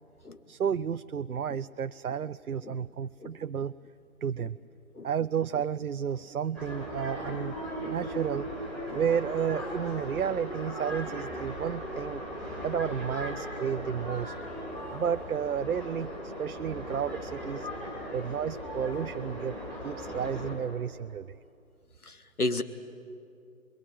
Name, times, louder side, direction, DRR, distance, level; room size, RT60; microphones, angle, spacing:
voice 1, 0.5-3.7 4.2-4.6 5.0-7.6 7.9-8.5 8.9-12.2 12.6-14.3 14.9-17.7 18.1-21.3, right 8 dB, 80° right, 13 dB, 0.6 m, -32 dB
sound 1, 6.5-20.6, equal, ahead, 2.4 m, -38 dB
voice 2, 22.0-22.6, left 2 dB, 85° left, 10 dB, 2.0 m, -34 dB
28.0 x 21.5 x 9.0 m, 2.6 s
figure-of-eight pair, 160°, 43 cm